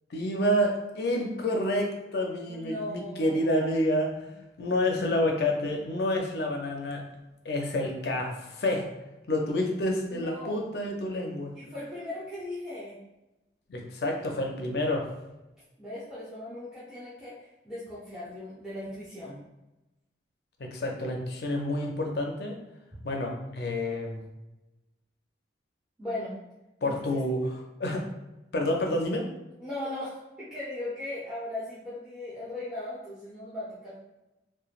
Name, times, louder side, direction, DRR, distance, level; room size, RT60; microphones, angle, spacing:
voice 1, 0.1-4.3 4.6-7.0 7.4-8.9 9.3-11.5 13.7-15.1 20.6-22.6 23.0-24.2 26.8-28.0 28.5-29.2, left 1 dB, 60° left, 2 dB, 0.5 m, -28 dB
voice 2, 2.5-3.7 10.1-10.6 11.6-13.0 15.8-19.4 26.0-26.4 26.8-27.2 29.6-34.0, left 1 dB, 5° right, -12 dB, 0.6 m, -38 dB
3.0 x 2.1 x 2.4 m, 0.98 s
head